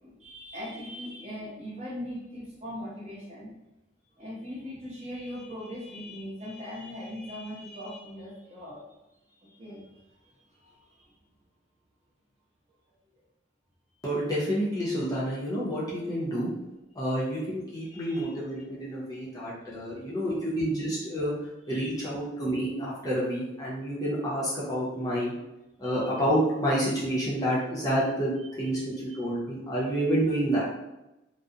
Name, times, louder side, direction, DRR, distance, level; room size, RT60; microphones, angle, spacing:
voice 1, 0.0-3.5 4.1-8.9 9.4-11.1 17.7-18.3 19.7-20.4 21.7-21.9 25.8-26.2 28.4-29.2, left 1 dB, 35° right, -6 dB, 0.7 m, -41 dB
voice 2, 14.0-16.5 16.9-21.3 21.7-25.3 25.8-28.3 28.6-30.7, equal, 20° left, -7 dB, 0.6 m, -29 dB
2.4 x 2.0 x 2.7 m, 0.95 s
head